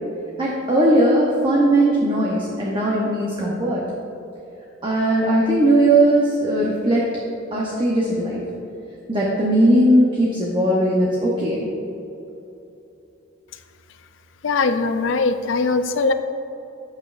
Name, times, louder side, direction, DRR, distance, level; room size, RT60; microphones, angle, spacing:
voice 1, 0.4-3.8 4.8-7.1 7.5-8.4 9.1-11.7, right 1 dB, 25° right, -4 dB, 0.8 m, -18 dB
voice 2, 14.4-16.1, left 4 dB, 75° left, 9 dB, 0.4 m, -20 dB
8.9 x 7.3 x 2.5 m, 2.9 s
head